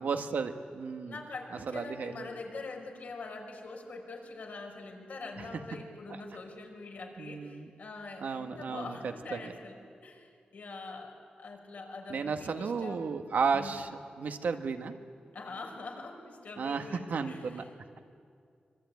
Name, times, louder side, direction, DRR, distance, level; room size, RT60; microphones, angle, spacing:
voice 1, 0.0-1.2 1.7-2.3 5.4-5.5 6.1-6.2 7.2-7.7 8.2-9.5 12.1-13.9 14.2-15.0 16.6-17.6, right 5 dB, 85° right, 6 dB, 1.5 m, -33 dB
voice 2, 1.0-13.1 13.5-13.7 15.3-18.0, left 3 dB, 75° left, 1 dB, 5.1 m, -44 dB
25.0 x 23.5 x 9.6 m, 2.3 s
wide cardioid pair, 100°, 3 cm